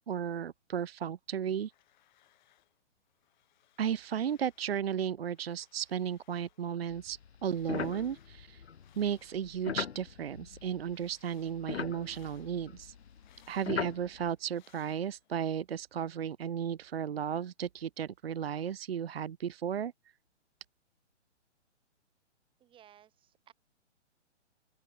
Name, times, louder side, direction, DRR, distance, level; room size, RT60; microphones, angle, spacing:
voice 1, 0.0-1.7 3.8-8.6 9.0-12.9 13.5-19.9, right 8 dB, 55° right, 0.7 m, -34 dB
sound 1, 1.4-2.8 3.0-4.8 5.2-9.9 10.3-15.4, left 13 dB, 40° left, 7.8 m, -68 dB
sound 2, 6.9-11.1 11.4-14.3, left 7 dB, 60° left, 1.1 m, -40 dB
voice 2, 22.6-23.5, right 11 dB, 15° right, 3.2 m, -59 dB
open air
figure-of-eight pair, 130°, 36 cm